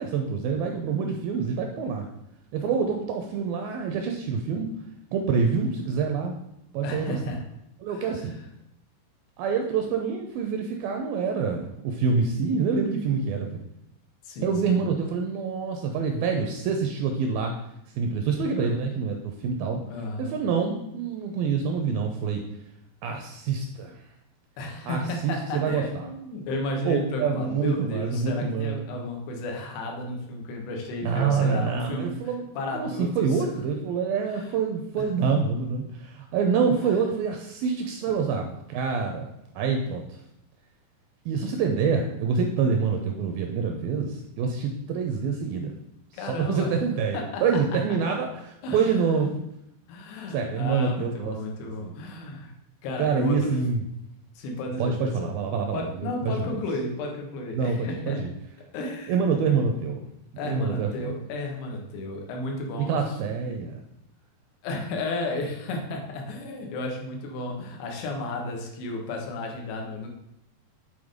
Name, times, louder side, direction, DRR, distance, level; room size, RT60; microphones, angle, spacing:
voice 1, 0.0-2.1 2.5-4.7 5.1-6.3 6.7-7.4 7.8-8.4 9.4-13.7 14.4-17.5 18.0-19.8 20.2-22.4 23.0-23.9 24.9-26.1 26.8-28.9 31.0-32.5 32.7-40.0 41.3-45.7 46.1-49.4 50.3-51.4 51.8-51.9 53.0-53.8 54.8-56.5 57.5-58.3 59.1-60.0 60.4-61.1 62.8-63.8, right 5 dB, 80° right, 3 dB, 2.1 m, -26 dB
voice 2, 6.8-7.4 7.9-8.3 14.2-14.8 19.9-20.4 24.6-32.1 32.5-33.5 34.2-34.6 35.0-35.1 46.1-46.7 47.1-47.4 48.6-49.2 49.9-52.5 52.8-53.6 54.4-55.3 55.7-58.3 58.7-59.1 60.4-63.2 64.6-70.1, left 2 dB, 85° left, 1 dB, 3.4 m, -33 dB
8.7 x 3.8 x 5.0 m, 0.80 s
omnidirectional pair, 4.8 m